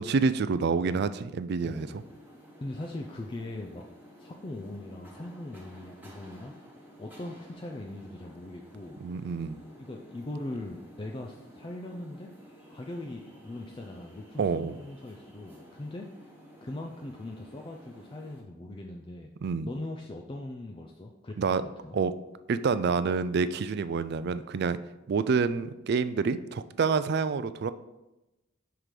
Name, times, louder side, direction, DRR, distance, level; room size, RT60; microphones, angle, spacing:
voice 1, 0.0-2.0 9.0-9.6 14.4-14.8 19.4-19.7 21.4-21.6 21.9-22.1 22.5-24.8 25.1-27.7, right 5 dB, 50° right, 13 dB, 0.3 m, -27 dB
voice 2, 1.6-1.9 2.6-3.9 4.2-6.5 7.0-9.0 9.7-12.3 12.7-16.3 16.6-19.3 19.6-22.0, left 1 dB, 25° left, 1 dB, 0.4 m, -40 dB
sound 1, 1.6-18.4, equal, 10° right, 1.1 m, -52 dB
5.9 x 4.7 x 5.1 m, 1.0 s
head